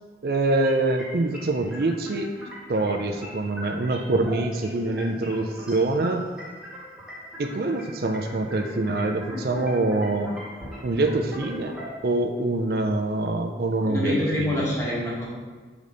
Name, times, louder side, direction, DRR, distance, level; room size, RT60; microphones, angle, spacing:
voice 1, 0.2-2.3 2.7-6.2 7.4-10.3 10.8-11.8 12.0-14.6, right 2 dB, 60° right, 3 dB, 0.5 m, -25 dB
sound 1, 0.6-12.0, equal, 5° right, 1.6 m, -40 dB
voice 2, 13.8-15.3, left 1 dB, 15° left, -6 dB, 1.6 m, -26 dB
5.0 x 4.0 x 5.1 m, 1.4 s
head